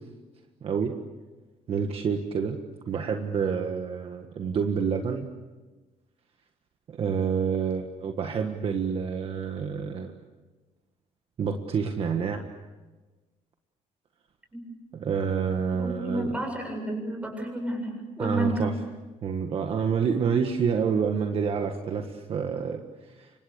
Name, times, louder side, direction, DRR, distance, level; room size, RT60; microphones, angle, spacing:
voice 1, 0.6-0.9 1.7-2.6 2.9-5.3 6.9-10.1 11.4-12.4 14.9-16.3 18.2-18.7 19.2-23.3, right 6 dB, 45° right, 4 dB, 1.6 m, -28 dB
voice 2, 15.8-18.7, right 1 dB, 10° right, 3 dB, 7.6 m, -31 dB
29.5 x 25.5 x 6.8 m, 1.2 s
cardioid pair, 155°, 13 cm